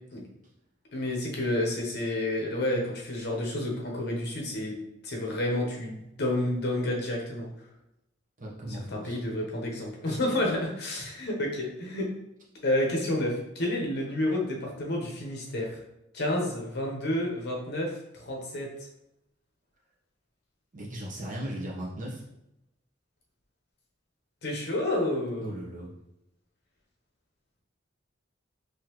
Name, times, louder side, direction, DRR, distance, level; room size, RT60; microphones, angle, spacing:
voice 1, 0.9-4.8 5.0-7.5 8.7-12.1 12.6-15.8 16.1-18.7 24.4-25.6, left 1 dB, 60° left, -1 dB, 0.9 m, -30 dB
voice 2, 8.4-9.2 10.0-10.2 10.9-11.0 20.7-22.2 25.4-25.9, right 1 dB, 45° right, -4 dB, 1.0 m, -37 dB
3.9 x 3.0 x 3.0 m, 0.87 s
head